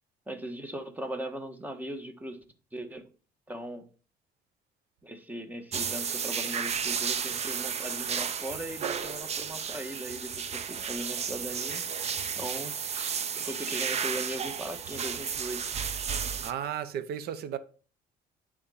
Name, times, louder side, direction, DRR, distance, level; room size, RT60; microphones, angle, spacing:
voice 1, 0.3-2.4 2.7-3.0 3.5-3.8 5.0-11.8 12.3-12.8 13.3-15.9, right 1 dB, 10° right, 1.3 m, -39 dB
sound 1, 5.7-16.5, right 7 dB, 40° right, 0.7 m, -33 dB
voice 2, 16.4-17.6, right 9 dB, 70° right, 0.8 m, -34 dB
9.9 x 3.7 x 5.5 m
cardioid pair, 110°, 17 cm